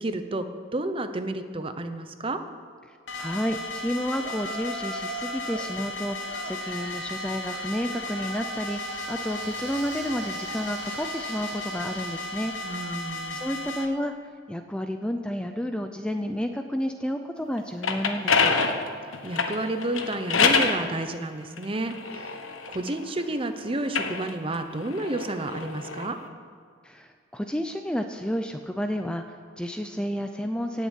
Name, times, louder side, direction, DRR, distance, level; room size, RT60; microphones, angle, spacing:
voice 1, 0.0-2.4 12.6-13.4 19.0-22.4 22.7-26.2, right 2 dB, 25° right, 8 dB, 0.8 m, -31 dB
voice 2, 2.9-12.5 13.3-14.1 14.5-18.6 26.8-30.9, equal, 5° left, 6 dB, 0.5 m, -31 dB
sound 1, 3.1-13.9, left 2 dB, 70° left, 1.1 m, -35 dB
Yell, 4.2-5.7 6.3-13.0, right 3 dB, 55° right, 1.7 m, -41 dB
sound 2, 17.6-20.8 21.6-23.3 23.8-26.1, left 5 dB, 90° left, 1.3 m, -26 dB
17.5 x 7.3 x 8.3 m, 2.2 s
head